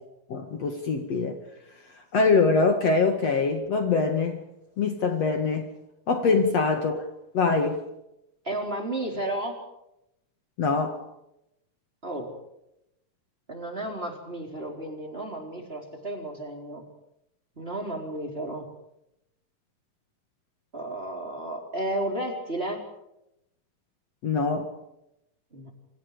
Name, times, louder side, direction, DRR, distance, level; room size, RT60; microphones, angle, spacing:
voice 1, 0.3-1.4 2.1-4.4 4.8-5.7 6.1-7.0 7.3-7.8 10.6-11.0 24.2-24.7, left 4 dB, 50° left, 2.8 m, -23 dB
voice 2, 8.4-9.6 12.0-12.3 13.5-16.8 17.6-18.7 20.7-22.8 25.5-25.7, right 1 dB, 15° right, 4.3 m, -33 dB
29.0 x 26.0 x 5.1 m
omnidirectional pair, 3.9 m